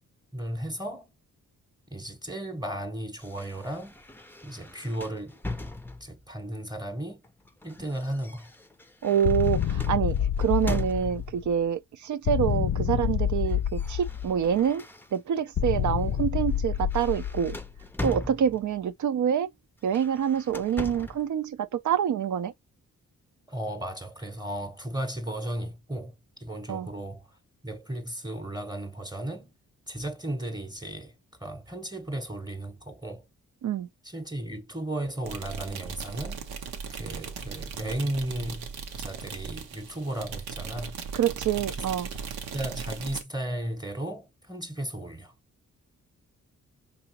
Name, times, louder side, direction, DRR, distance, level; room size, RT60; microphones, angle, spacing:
voice 1, 0.3-1.1 1.9-4.0 4.4-5.4 6.0-7.2 7.6-8.5 23.5-27.4 27.6-29.5 29.9-33.3 34.0-38.7 39.0-41.0 42.1-42.2 42.5-45.3, right 1 dB, 10° right, 0.9 m, -35 dB
sound 1, 3.2-6.3 7.2-11.4 12.5-12.8 13.1-15.4 15.9-16.1 16.5-18.9 19.8-21.3, left 2 dB, 5° left, 0.5 m, -40 dB
voice 2, 9.0-14.8 15.1-17.6 18.0-19.5 19.8-22.5 26.7-26.9 33.6-33.9 41.1-42.1, right 9 dB, 55° right, 0.5 m, -26 dB
sound 2, 9.2-11.5 12.3-14.6 15.6-17.8, left 9 dB, 50° left, 0.5 m, -28 dB
sound 3, 35.2-43.2, right 6 dB, 90° right, 0.7 m, -38 dB
4.7 x 3.0 x 2.9 m
supercardioid pair, 50°, 35 cm